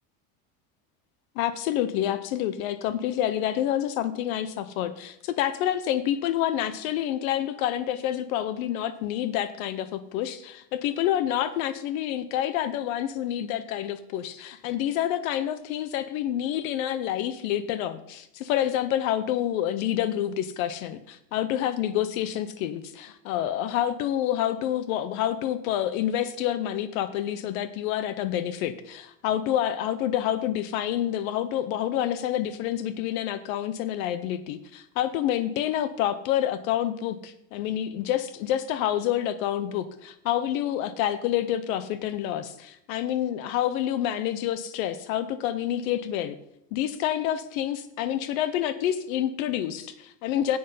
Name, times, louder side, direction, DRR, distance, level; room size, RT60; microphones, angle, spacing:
voice 1, 1.4-46.4 46.7-50.6, left 11 dB, 70° left, 13 dB, 0.8 m, -28 dB
10.5 x 7.9 x 5.5 m, 0.80 s
cardioid pair, 175°, 43 cm